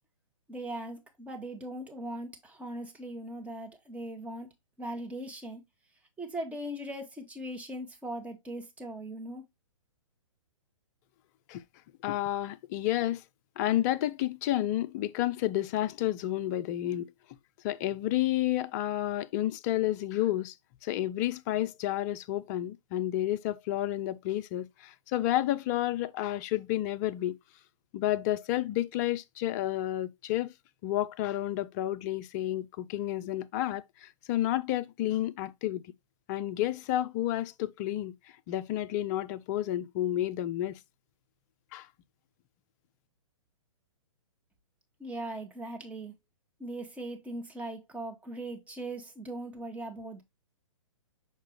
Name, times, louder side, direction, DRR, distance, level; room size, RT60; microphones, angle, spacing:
voice 1, 0.5-4.5 4.8-5.6 6.2-9.4 45.0-46.1 46.6-50.2, right 1 dB, 10° right, 1.3 m, -39 dB
voice 2, 12.0-13.2 13.6-17.1 17.6-20.6 20.8-27.4 27.9-30.5 30.8-35.8 36.3-38.1 38.5-40.8 41.7-41.9, left 14 dB, 30° left, 0.5 m, -30 dB
6.6 x 4.8 x 3.0 m
figure-of-eight pair, 125°, 17 cm